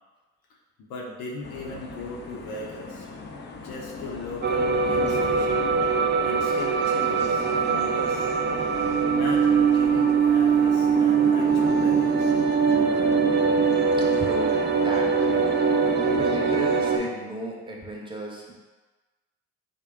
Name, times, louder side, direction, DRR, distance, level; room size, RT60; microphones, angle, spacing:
voice 1, 0.8-3.1 3.6-5.7 6.0-8.3 9.1-12.3 12.6-13.3, left 3 dB, 75° left, -3 dB, 0.7 m, -38 dB
sound 1, 1.4-17.1, left 3 dB, 30° left, 0.5 m, -37 dB
sound 2, 4.4-17.0, right 6 dB, 30° right, 0.4 m, -22 dB
voice 2, 14.1-15.5 16.1-18.6, right 1 dB, 15° right, -1 dB, 0.9 m, -35 dB
3.6 x 2.1 x 3.6 m, 1.2 s
hypercardioid pair, 45°, 37 cm